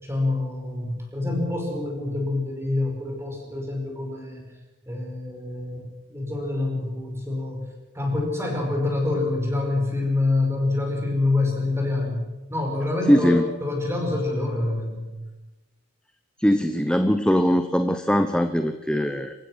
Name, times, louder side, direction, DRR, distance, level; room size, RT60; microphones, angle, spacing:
voice 1, 0.0-4.4 4.9-7.7 7.9-12.2 12.5-15.0, left 2 dB, 10° right, 1 dB, 5.3 m, -26 dB
voice 2, 13.1-13.4 16.4-19.3, equal, 5° left, 8 dB, 0.9 m, -21 dB
27.5 x 15.5 x 6.3 m, 1.1 s
head